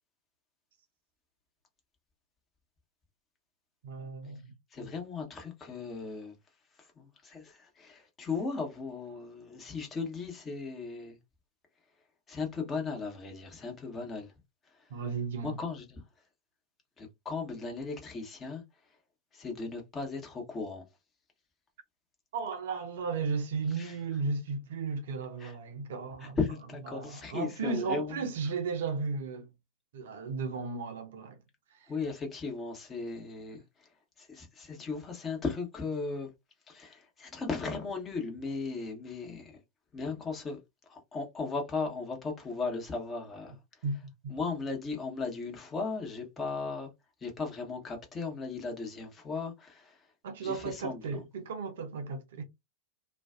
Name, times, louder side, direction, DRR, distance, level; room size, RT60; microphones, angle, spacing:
voice 1, 3.8-4.5 14.9-15.6 22.3-26.4 26.9-29.5 29.9-31.4 31.7-31.9 43.8-44.3 50.2-52.4, right 4 dB, 60° right, 0.6 m, -35 dB
voice 2, 4.7-6.3 6.8-11.2 12.3-14.3 15.4-16.0 17.0-18.6 19.3-20.8 23.8-23.9 25.4-25.5 26.2-28.2 31.9-33.9 34.2-36.3 36.7-39.6 39.9-40.6 40.9-43.6 44.3-46.9 47.2-50.0 50.4-51.2, left 4 dB, 25° left, 1.0 m, -37 dB
2.4 x 2.3 x 2.4 m
figure-of-eight pair, 85°, 0 cm